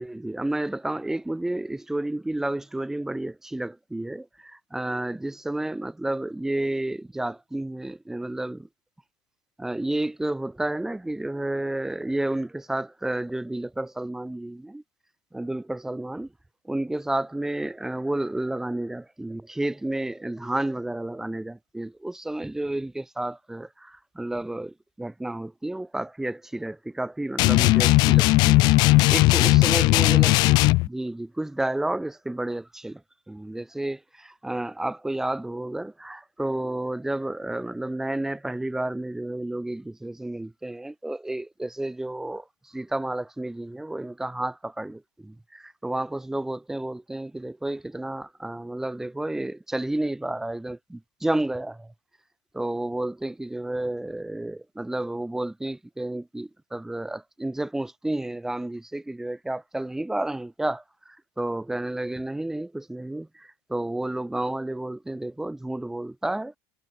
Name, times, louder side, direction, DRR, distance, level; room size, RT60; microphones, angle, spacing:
voice 1, 0.0-8.7 9.6-14.8 15.3-16.3 16.6-28.7 29.1-30.3 30.8-33.0 33.3-51.9 52.5-66.5, right 1 dB, 5° right, 6.3 m, -31 dB
sound 1, 27.4-30.9, left 22 dB, 60° left, 1.4 m, -17 dB
cardioid pair, 135°, 8 cm